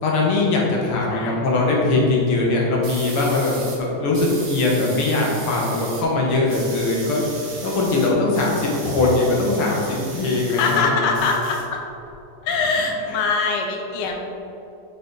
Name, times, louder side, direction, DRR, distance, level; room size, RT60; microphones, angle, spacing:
voice 1, 0.0-7.2 7.6-11.2 13.1-13.2, left 2 dB, 85° left, -3 dB, 2.2 m, -21 dB
voice 2, 1.1-1.5 10.5-11.8 12.4-14.2, left 4 dB, 65° left, 1 dB, 1.3 m, -23 dB
sound 1, 2.8-3.8 4.1-6.0 6.3-10.8 11.1-12.1, right 4 dB, 70° right, 1.9 m, -37 dB
7.6 x 5.4 x 4.0 m, 2.8 s
omnidirectional pair, 2.4 m